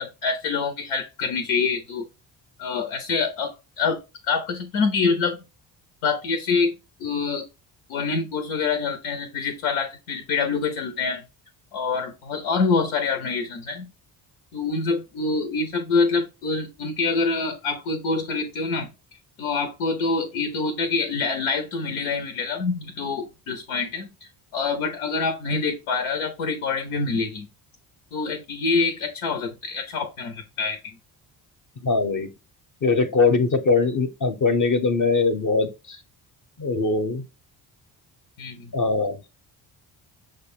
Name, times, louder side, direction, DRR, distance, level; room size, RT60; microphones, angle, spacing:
voice 1, 0.0-2.1 2.6-4.0 4.3-5.4 6.0-7.4 7.9-11.2 11.7-13.9 14.5-18.9 19.4-24.1 24.5-27.5 28.1-30.8 38.4-38.7, left 4 dB, 85° left, 0.8 m, -26 dB
voice 2, 31.8-32.3 32.8-36.0 36.6-37.2 38.7-39.2, left 4 dB, 40° left, 0.8 m, -21 dB
6.4 x 2.2 x 3.5 m
hypercardioid pair, 50°, 50 cm